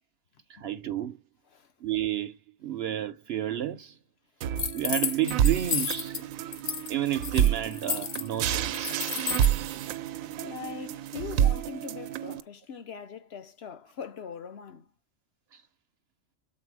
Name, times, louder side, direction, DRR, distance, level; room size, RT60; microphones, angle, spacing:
voice 1, 0.5-1.2 1.8-2.4 2.6-4.0 4.7-6.2 6.9-9.0 15.5-15.6, right 11 dB, 65° right, 0.7 m, -31 dB
sound 1, 4.4-12.4, right 10 dB, 90° right, 1.0 m, -29 dB
sound 2, 4.6-6.2 6.5-6.9 7.1-9.5, left 7 dB, 80° left, 1.3 m, -32 dB
voice 2, 10.4-14.9, left 7 dB, 55° left, 1.0 m, -41 dB
7.4 x 4.3 x 4.7 m
omnidirectional pair, 1.4 m